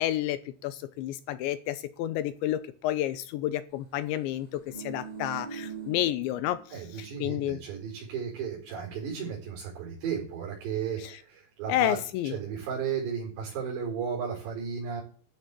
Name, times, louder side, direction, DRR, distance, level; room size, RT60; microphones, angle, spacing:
voice 1, 0.0-7.6 11.0-11.2 11.7-12.4, left 13 dB, 80° left, 14 dB, 3.0 m, -30 dB
sound 1, 4.4-7.0 7.3-7.4, right 6 dB, 50° right, 0.5 m, -42 dB
voice 2, 6.7-12.0 12.3-15.0, right 7 dB, 65° right, -1 dB, 6.6 m, -34 dB
13.0 x 7.3 x 8.2 m, 0.41 s
omnidirectional pair, 5.5 m